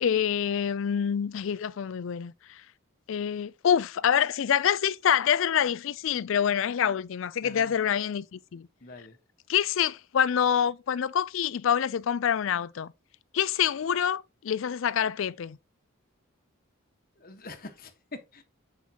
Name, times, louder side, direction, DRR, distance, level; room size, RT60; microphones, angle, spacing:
voice 1, 0.0-2.6 3.1-8.7 9.5-12.9 13.3-15.6, left 8 dB, 65° left, 0.4 m, -26 dB
voice 2, 7.4-7.7 8.8-9.2 17.2-18.4, left 3 dB, 45° left, 1.3 m, -44 dB
8.4 x 5.5 x 2.9 m
head